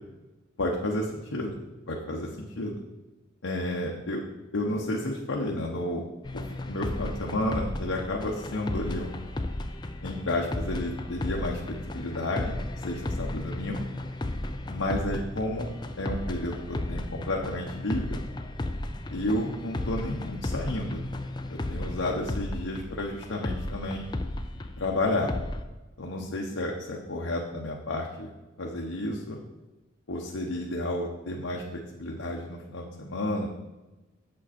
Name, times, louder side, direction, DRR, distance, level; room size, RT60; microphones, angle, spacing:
voice 1, 0.6-1.6 1.9-2.8 3.4-4.2 4.5-6.0 6.3-9.1 10.0-12.6 12.8-13.9 14.7-15.7 16.0-18.2 19.1-21.0 21.5-24.0 24.8-25.3 26.0-28.3 28.6-29.4 30.1-33.5, left 1 dB, 80° left, -1 dB, 1.0 m, -31 dB
sound 1, 6.2-25.6, left 1 dB, 20° left, 0.4 m, -34 dB
7.7 x 7.5 x 4.3 m, 1.1 s
head